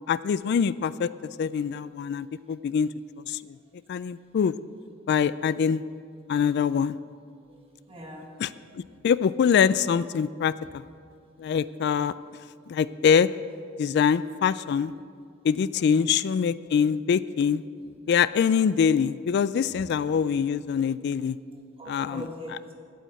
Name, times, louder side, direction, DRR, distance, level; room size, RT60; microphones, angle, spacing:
voice 1, 0.1-1.1 1.4-2.9 3.3-3.6 3.9-4.5 5.1-5.8 6.3-7.0 8.4-10.8 11.4-12.1 12.7-13.3 13.8-14.9 15.4-17.6 18.1-21.4 21.9-22.3, left 7 dB, 55° left, 17 dB, 0.3 m, -24 dB
voice 2, 7.5-8.3 8.5-8.7 15.8-16.0 21.8-22.7, equal, 30° right, 0 dB, 1.8 m, -42 dB
9.2 x 8.4 x 8.8 m, 2.2 s
head